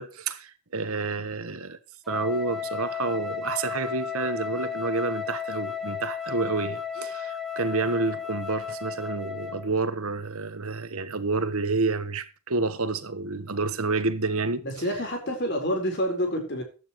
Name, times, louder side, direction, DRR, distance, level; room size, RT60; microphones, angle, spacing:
voice 1, 0.0-1.8 2.1-14.6, right 3 dB, 75° right, 1.4 m, -29 dB
Wind instrument woodwind instrument, 2.1-9.7, left 7 dB, ahead, 1.6 m, -34 dB
voice 2, 14.6-16.6, equal, 50° left, 4.5 m, -28 dB
15.5 x 11.5 x 3.2 m
head